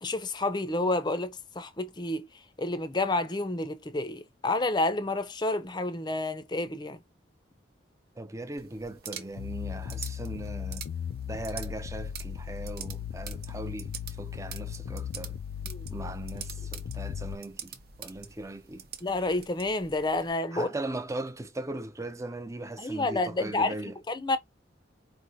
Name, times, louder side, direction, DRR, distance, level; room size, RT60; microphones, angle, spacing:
voice 1, 0.0-2.3 2.6-7.0 15.6-15.9 19.0-20.7 22.8-23.7 24.1-24.4, left 2 dB, 25° left, 0.6 m, -29 dB
voice 2, 8.2-10.9 11.2-15.4 15.9-18.9 20.5-24.0, right 2 dB, 15° right, 0.5 m, -39 dB
sound 1, 8.6-20.3, right 8 dB, 55° right, 0.7 m, -46 dB
sound 2, 9.4-17.4, left 8 dB, 75° left, 0.3 m, -37 dB
4.5 x 3.2 x 2.7 m
head